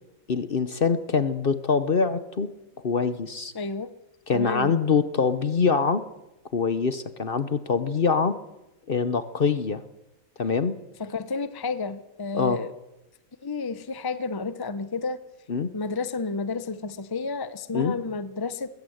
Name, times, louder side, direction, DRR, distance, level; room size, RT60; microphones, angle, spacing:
voice 1, 0.3-2.5 2.8-3.5 4.3-6.0 6.5-8.4 8.9-9.8 10.4-10.8 12.3-12.6 15.5-15.7 17.7-18.0, left 5 dB, 45° left, 13 dB, 1.0 m, -24 dB
voice 2, 3.5-3.9 4.3-4.7 11.0-12.7 13.4-15.2 15.7-18.7, left 4 dB, 20° left, 13 dB, 0.7 m, -31 dB
20.5 x 17.0 x 7.9 m, 0.94 s
omnidirectional pair, 1.5 m